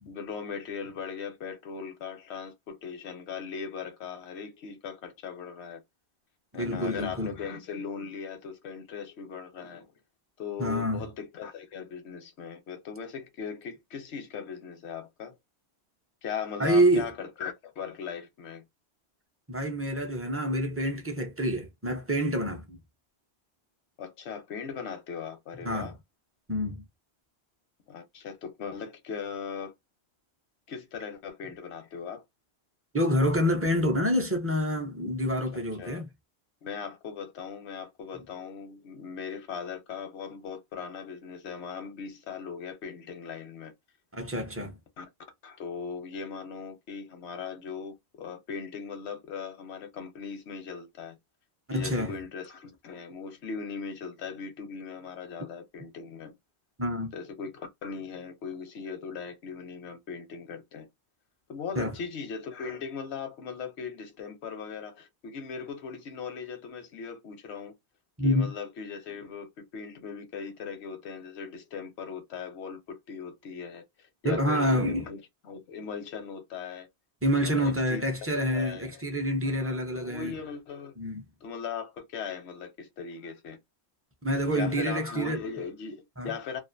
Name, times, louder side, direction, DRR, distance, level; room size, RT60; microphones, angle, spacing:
voice 1, 0.1-5.8 6.5-9.9 10.4-15.4 16.2-18.6 24.0-26.0 27.9-29.7 30.7-32.2 35.5-36.0 36.6-43.7 45.0-45.1 45.4-51.2 51.7-56.3 57.1-60.9 61.5-67.7 68.2-76.9 77.4-79.0 79.5-80.9 81.4-83.6 84.5-86.6, left 6 dB, 85° left, 1.0 m, -39 dB
voice 2, 6.5-7.3 10.6-11.0 16.6-17.1 19.5-22.8 25.6-25.9 26.5-26.8 32.9-36.1 44.1-44.8 51.7-52.1 56.8-57.1 61.8-61.9 68.2-68.5 74.2-75.0 77.2-80.3 81.0-81.2 84.2-85.4 86.2-86.3, equal, 20° right, 0.4 m, -27 dB
2.4 x 2.4 x 2.5 m
omnidirectional pair, 1.1 m